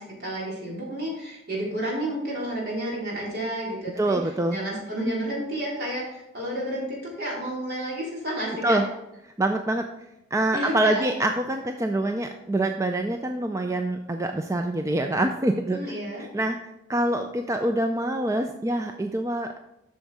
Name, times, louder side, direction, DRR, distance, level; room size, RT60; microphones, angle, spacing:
voice 1, 0.0-8.8 10.5-11.2 15.7-16.2, right 1 dB, 55° right, -4 dB, 3.6 m, -31 dB
voice 2, 4.0-4.6 8.6-8.8 9.4-9.9 10.3-15.9 16.2-16.6 16.9-19.6, right 1 dB, 15° right, 5 dB, 0.4 m, -25 dB
7.9 x 6.3 x 4.7 m, 0.90 s
head